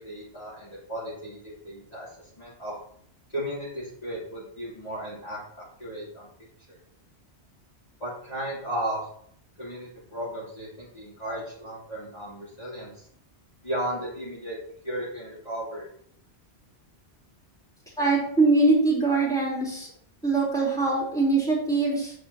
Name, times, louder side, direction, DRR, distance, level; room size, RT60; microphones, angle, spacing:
voice 1, 0.0-2.1 2.4-2.7 3.3-5.4 5.8-6.3 6.7-6.8 8.0-9.0 9.6-13.0 13.6-14.6 14.8-15.9, right 1 dB, 35° left, -9 dB, 3.1 m, -35 dB
voice 2, 18.0-19.9 20.2-22.1, right 3 dB, 5° left, -7 dB, 3.5 m, -22 dB
8.9 x 7.1 x 2.8 m, 0.66 s
omnidirectional pair, 1.2 m